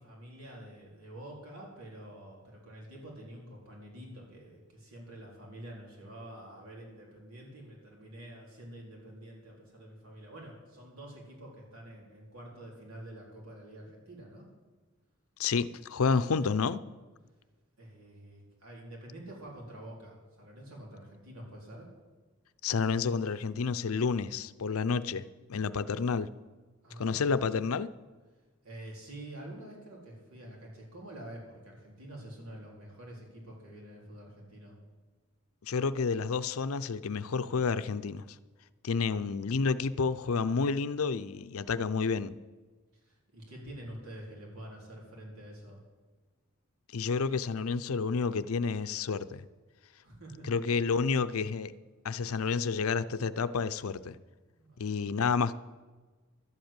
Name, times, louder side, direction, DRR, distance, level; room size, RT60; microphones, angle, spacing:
voice 1, 0.0-14.5 17.8-21.9 26.8-27.2 28.6-34.8 43.0-45.8 50.0-50.6 54.6-54.8, right 1 dB, 90° right, -2 dB, 4.1 m, -47 dB
voice 2, 15.4-16.8 22.6-25.2 25.5-26.3 27.0-27.9 35.6-38.2 38.8-42.3 46.9-49.4 50.4-51.7 52.0-54.2 54.8-55.6, left 5 dB, 80° left, 14 dB, 0.5 m, -30 dB
12.0 x 8.0 x 8.8 m, 1.3 s
head